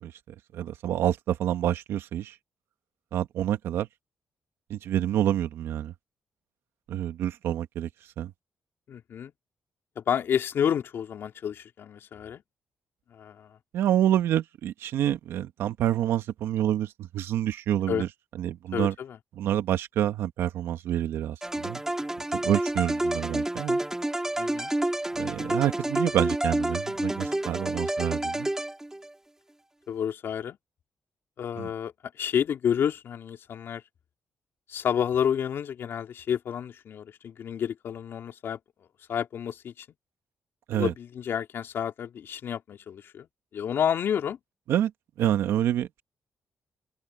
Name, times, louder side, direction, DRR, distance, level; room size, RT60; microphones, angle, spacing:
voice 1, 0.5-2.3 3.1-3.9 4.7-5.9 6.9-7.9 8.2-8.3 13.7-18.1 18.4-18.9 19.4-21.8 22.3-23.8 25.1-28.5 31.6-31.7 40.7-40.9 44.7-44.9 45.2-46.0, right 11 dB, 85° right, 1.8 m, -27 dB
voice 2, 8.9-9.3 10.0-12.4 13.1-13.6 17.9-18.1 18.7-19.2 24.4-24.7 29.9-30.6 31.4-33.8 34.7-38.6 39.1-39.9 40.7-43.3 43.5-44.4, left 8 dB, 70° left, 3.0 m, -30 dB
sound 1, 21.4-29.1, right 1 dB, 10° right, 6.3 m, -29 dB
open air
cardioid pair, 70°, 4 cm